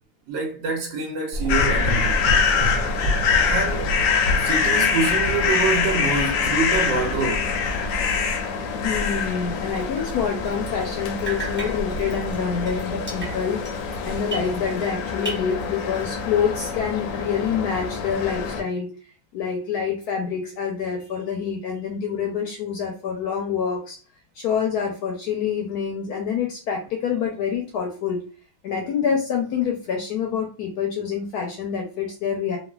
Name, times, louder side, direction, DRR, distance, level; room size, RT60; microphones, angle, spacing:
voice 1, 0.3-2.2 3.5-3.9 4.4-7.5, right 4 dB, 90° right, 1.3 m, -26 dB
Gurgling / Engine, 1.3-8.0, left 1 dB, 70° right, 1.2 m, -29 dB
sound 1, 1.5-18.6, left 5 dB, 90° left, 1.3 m, -25 dB
voice 2, 8.7-13.6 14.0-18.9 19.3-24.0 24.3-28.2 28.6-32.6, left 7 dB, 70° left, 1.0 m, -26 dB
Drip, 9.7-10.9 11.2-14.9 15.2-16.2, right 3 dB, 10° right, 0.5 m, -37 dB
3.1 x 2.4 x 2.2 m
omnidirectional pair, 2.0 m